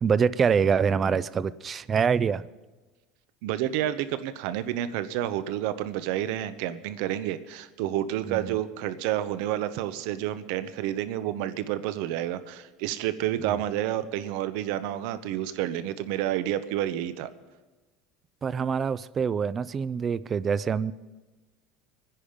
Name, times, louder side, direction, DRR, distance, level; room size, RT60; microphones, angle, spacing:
voice 1, 0.0-2.4 8.3-8.6 13.5-13.6 18.4-20.9, right 6 dB, 25° right, 18 dB, 0.4 m, -25 dB
voice 2, 3.4-17.3, right 12 dB, 70° right, 13 dB, 0.8 m, -29 dB
23.5 x 10.0 x 5.1 m, 1.2 s
cardioid pair, 145°, 0 cm